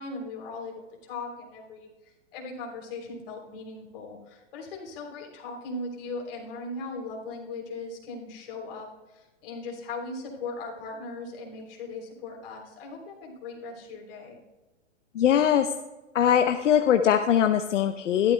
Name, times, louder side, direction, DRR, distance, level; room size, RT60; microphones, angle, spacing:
voice 1, 0.0-14.4, left 3 dB, 50° left, 0 dB, 3.5 m, -39 dB
voice 2, 15.1-15.7 16.1-18.3, left 9 dB, 80° left, 7 dB, 0.9 m, -21 dB
14.5 x 12.5 x 2.2 m, 1.1 s
hypercardioid pair, 155°, 37 cm